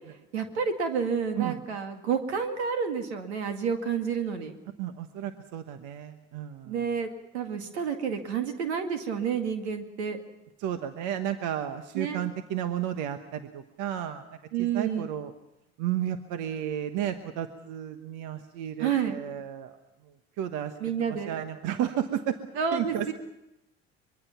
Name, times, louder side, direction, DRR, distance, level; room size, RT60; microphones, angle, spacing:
voice 1, 0.3-4.5 6.7-7.1 7.3-10.2 11.9-12.2 14.5-15.1 18.8-19.2 20.8-21.4 22.6-23.1, right 6 dB, 90° right, 6 dB, 2.0 m, -29 dB
voice 2, 4.8-6.9 10.6-14.3 14.6-15.3 15.8-19.8 20.4-20.7 21.1-22.4 22.7-23.1, right 10 dB, 65° right, 9 dB, 1.3 m, -32 dB
24.0 x 22.0 x 5.8 m, 0.90 s
hypercardioid pair, 70°, 32 cm